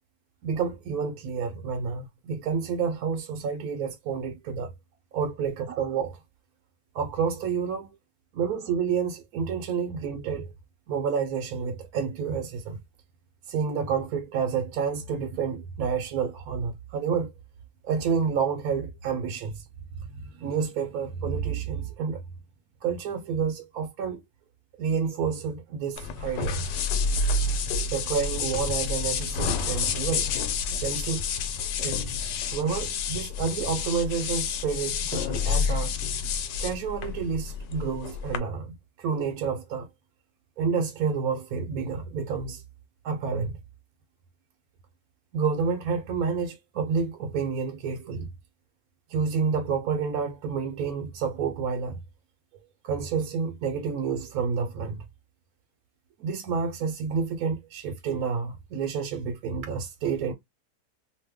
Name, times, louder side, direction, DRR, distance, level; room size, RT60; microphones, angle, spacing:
voice 1, 0.4-4.7 5.1-6.2 6.9-7.9 8.3-10.5 10.9-12.8 13.5-17.3 17.8-19.6 20.2-22.2 22.8-24.2 24.8-26.7 27.9-30.3 30.8-31.3 31.8-32.1 32.5-36.0 36.6-39.9 40.6-42.6 43.0-43.6 45.3-48.3 49.1-52.0 52.8-55.0 56.2-60.3, right 6 dB, 70° right, 1.0 m, -29 dB
sound 1, 26.0-38.4, left 5 dB, 85° left, 1.3 m, -29 dB
2.8 x 2.1 x 3.5 m
omnidirectional pair, 1.8 m